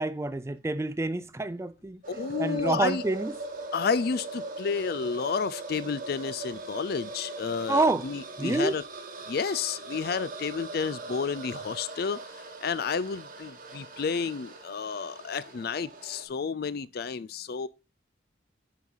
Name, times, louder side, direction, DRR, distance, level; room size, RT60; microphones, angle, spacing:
voice 1, 0.0-2.0 2.4-3.3 7.7-8.1 8.4-8.8, right 2 dB, 15° right, 0.3 m, -27 dB
sound 1, 2.0-16.3, right 2 dB, 45° right, 1.2 m, -40 dB
voice 2, 2.1-3.0 3.7-8.8 9.3-12.2 12.6-17.7, left 5 dB, 55° left, 0.4 m, -31 dB
9.4 x 4.7 x 3.8 m
head